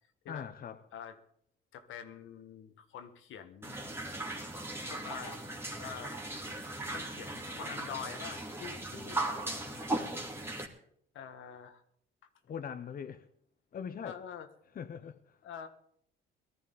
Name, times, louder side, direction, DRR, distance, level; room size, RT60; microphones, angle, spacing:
voice 1, 0.3-0.8 12.5-13.2 13.7-14.2 14.7-15.4, left 7 dB, 45° left, 0.9 m, -41 dB
voice 2, 1.7-3.8 4.8-5.4 5.7-6.2 6.8-9.8 11.1-11.8 14.0-14.5 15.4-15.7, left 8 dB, 80° left, 1.6 m, -46 dB
sound 1, 3.6-10.7, right 2 dB, 10° right, 2.4 m, -38 dB
19.0 x 13.5 x 4.0 m
cardioid pair, 90°, 20 cm